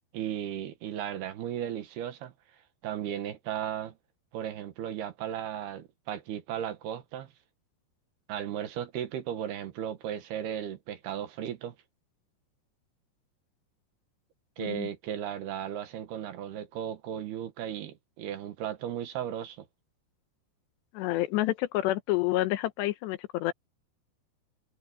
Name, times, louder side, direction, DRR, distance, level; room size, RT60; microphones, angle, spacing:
voice 1, 0.1-2.3 2.8-4.0 4.3-7.3 8.3-11.8 14.6-19.7, right 10 dB, 70° right, 3.3 m, -35 dB
voice 2, 14.6-14.9 20.9-23.5, left 16 dB, 80° left, 3.0 m, -28 dB
omnidirectional pair, 5.1 m